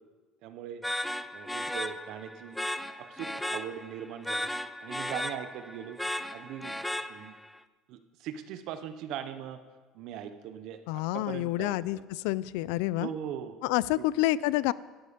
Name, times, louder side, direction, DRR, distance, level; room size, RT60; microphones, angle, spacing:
voice 1, 0.4-0.8 1.3-2.6 3.0-4.5 4.8-6.0 6.3-6.8 7.1-7.3 7.9-9.6 9.9-10.8 11.1-12.0 13.0-13.6 14.0-14.1, right 9 dB, 50° right, 10 dB, 0.7 m, -40 dB
sound 1, 0.8-7.5, left 1 dB, 5° left, 0.3 m, -35 dB
voice 2, 10.9-12.0 12.2-13.1 13.6-14.7, left 17 dB, 85° left, 20 dB, 0.4 m, -28 dB
12.5 x 12.0 x 5.1 m, 1.3 s
cardioid pair, 180°, 0 cm